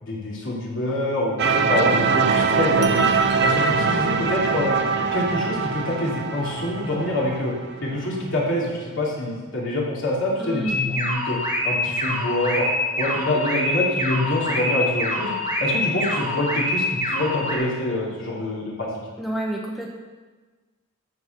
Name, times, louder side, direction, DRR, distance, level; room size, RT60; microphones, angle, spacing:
voice 1, 0.0-3.0 3.4-4.7 5.1-7.5 7.8-11.4 11.6-12.7 13.0-15.3 15.6-18.9, left 1 dB, 60° left, -4 dB, 3.0 m, -26 dB
sound 1, 1.4-8.1, right 4 dB, 55° right, 0.7 m, -22 dB
voice 2, 10.4-10.8 19.2-19.9, right 1 dB, ahead, -2 dB, 1.0 m, -28 dB
sound 2, 10.6-17.5, left 1 dB, 35° left, 2.8 m, -25 dB
14.0 x 4.8 x 6.8 m, 1.3 s
head